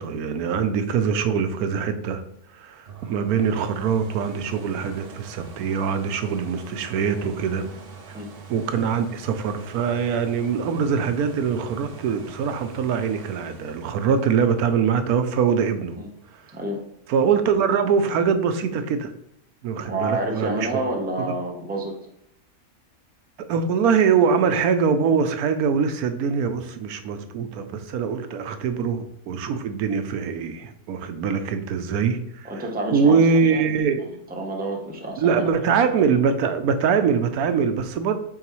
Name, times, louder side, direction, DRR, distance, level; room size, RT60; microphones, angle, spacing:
voice 1, 0.0-2.2 2.5-7.7 8.5-16.0 16.3-16.4 17.1-19.1 19.6-20.8 23.5-32.6 32.9-34.0 35.2-38.2, right 6 dB, 90° right, 9 dB, 1.1 m, -23 dB
sound 1, 2.9-16.5 17.1-17.2, right 4 dB, 55° right, 0.7 m, -43 dB
voice 2, 19.8-22.0 32.4-33.6 34.3-35.3, right 2 dB, 10° right, 0 dB, 0.7 m, -29 dB
8.7 x 3.6 x 3.0 m, 0.73 s
omnidirectional pair, 1.5 m